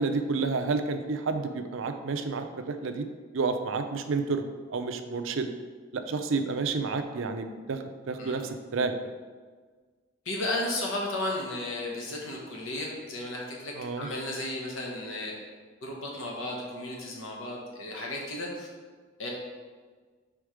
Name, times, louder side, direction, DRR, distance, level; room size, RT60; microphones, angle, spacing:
voice 1, 0.0-3.1 3.3-4.4 4.7-5.5 5.9-8.9 13.7-14.1, right 4 dB, 75° right, 7 dB, 0.5 m, -30 dB
voice 2, 10.2-15.3 15.8-18.7 19.2-19.3, left 1 dB, 80° left, -2 dB, 1.1 m, -34 dB
4.7 x 4.3 x 4.9 m, 1.5 s
head